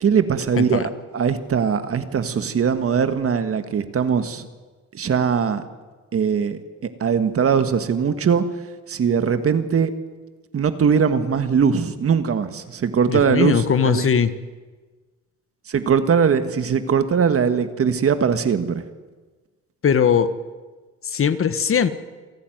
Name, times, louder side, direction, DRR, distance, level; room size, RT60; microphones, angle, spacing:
voice 1, 0.0-4.5 4.9-5.6 6.1-6.6 7.0-8.4 8.9-9.9 10.5-14.1 15.7-18.8, right 6 dB, 50° right, 10 dB, 1.7 m, -20 dB
voice 2, 0.5-0.9 13.1-14.3 19.8-20.3 21.0-21.9, left 7 dB, 45° left, 12 dB, 1.4 m, -19 dB
28.5 x 11.5 x 9.3 m, 1.3 s
cardioid pair, 90°, 30 cm